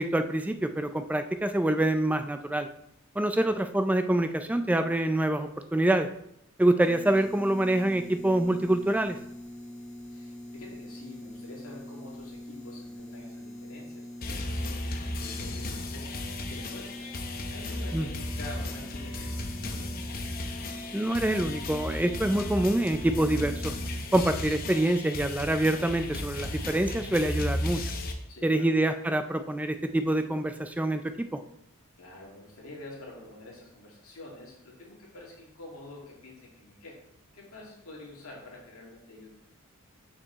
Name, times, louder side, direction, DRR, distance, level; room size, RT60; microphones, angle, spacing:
voice 1, 0.0-2.7 3.2-6.1 6.6-9.2 17.9-18.1 20.9-23.7 24.1-27.8 28.4-31.4, right 1 dB, 5° right, 9 dB, 0.3 m, -26 dB
sound 1, 6.8-24.0, left 1 dB, 10° left, 2.4 m, -43 dB
voice 2, 10.1-16.1 16.5-17.1 17.5-20.0 28.3-28.7 32.0-37.0 37.3-39.3, left 2 dB, 70° left, -3 dB, 2.4 m, -47 dB
sound 2, 14.2-28.1, left 1 dB, 40° left, 0.8 m, -35 dB
6.7 x 5.9 x 4.0 m, 0.75 s
head